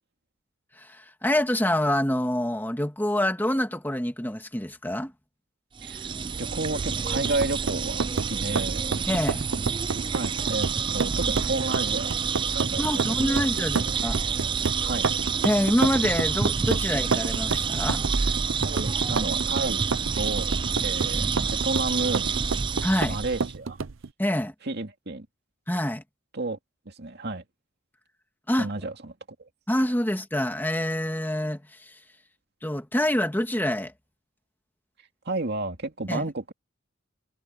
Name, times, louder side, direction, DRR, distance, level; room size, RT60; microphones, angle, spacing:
voice 1, 0.7-5.1 9.1-9.4 12.8-14.2 15.4-18.0 22.8-23.2 24.2-24.5 25.7-26.0 28.5-28.7 29.7-32.0 32.6-33.9 36.1-36.2, left 1 dB, 10° left, 2.1 m, -26 dB
sound 1, 5.8-23.5, right 6 dB, 25° right, 0.4 m, -28 dB
voice 2, 5.8-6.1 6.4-8.9 10.1-12.1 12.5-12.8 13.3-13.4 14.3-14.4 14.8-15.1 18.6-19.9 20.1-22.3 23.1-23.8 24.6-25.3 26.3-26.6 26.9-27.4 28.6-29.5 35.2-36.5, right 2 dB, 55° right, 2.4 m, -31 dB
sound 2, 6.6-24.1, right 4 dB, 75° right, 0.7 m, -31 dB
head